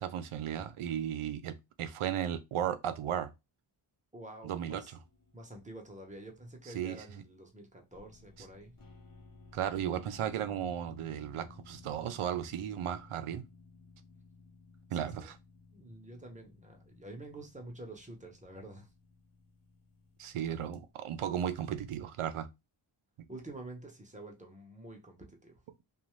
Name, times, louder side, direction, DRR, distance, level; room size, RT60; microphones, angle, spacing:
voice 1, 0.0-3.3 4.4-4.8 6.7-7.0 9.5-13.4 14.9-15.3 20.2-22.5, right 9 dB, 80° right, 0.6 m, -35 dB
voice 2, 4.1-4.9 5.3-8.7 14.9-15.3 15.7-18.9 23.3-25.6, right 2 dB, 15° right, 0.7 m, -48 dB
sound 1, 5.0-6.6 7.9-21.9, left 4 dB, 45° left, 0.8 m, -57 dB
2.5 x 2.3 x 3.1 m
wide cardioid pair, 100°, 49 cm